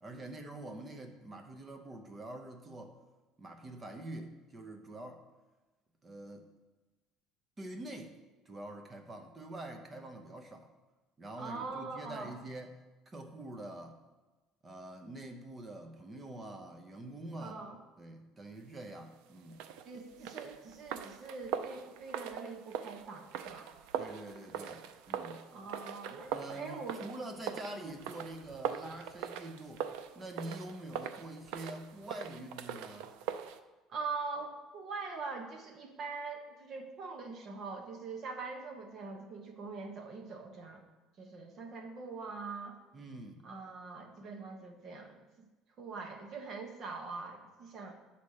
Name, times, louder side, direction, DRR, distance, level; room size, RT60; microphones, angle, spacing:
voice 1, 0.0-3.0 3.4-5.2 6.0-6.5 7.6-8.2 8.5-10.7 11.2-14.0 14.6-17.6 18.0-19.7 24.0-25.5 26.3-29.9 30.1-33.1 42.9-43.4, right 1 dB, 15° right, 5 dB, 0.8 m, -45 dB
voice 2, 11.4-12.3 17.4-17.8 19.8-23.7 25.5-27.0 33.9-40.8 41.2-42.8 43.4-45.5 45.8-48.0, right 4 dB, 40° right, 3 dB, 1.1 m, -43 dB
sound 1, 19.5-33.6, right 8 dB, 80° right, 0.5 m, -42 dB
9.7 x 4.2 x 6.5 m, 1.2 s
cardioid pair, 165°, 0 cm